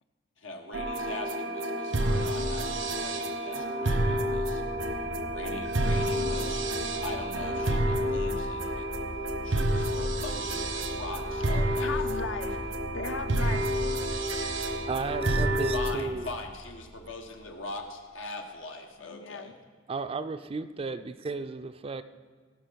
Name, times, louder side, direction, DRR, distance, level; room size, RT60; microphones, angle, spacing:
voice 1, 0.4-4.6 5.3-6.7 7.0-8.9 9.4-12.0 15.7-19.5, left 2 dB, 85° left, 3 dB, 1.4 m, -41 dB
sound 1, 0.7-15.9, right 1 dB, 85° right, 1.0 m, -29 dB
sound 2, 4.7-17.6, left 1 dB, 40° left, 0.7 m, -42 dB
voice 2, 11.8-12.6 12.9-13.7 19.0-19.5, left 5 dB, 70° left, 8 dB, 0.7 m, -36 dB
voice 3, 14.9-16.3 19.9-22.0, right 4 dB, 30° right, 11 dB, 0.4 m, -34 dB
17.0 x 5.8 x 5.2 m, 1.5 s
head